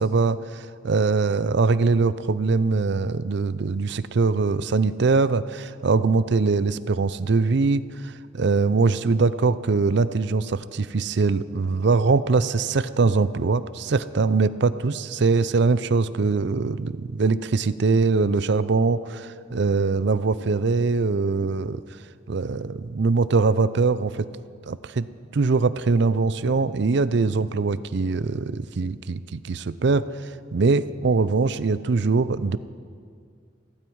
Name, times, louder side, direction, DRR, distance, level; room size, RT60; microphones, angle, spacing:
voice 1, 0.0-21.8 22.3-24.3 24.7-25.1 25.3-32.6, right 4 dB, 60° right, 15 dB, 0.5 m, -22 dB
16.0 x 16.0 x 4.7 m, 2.2 s
head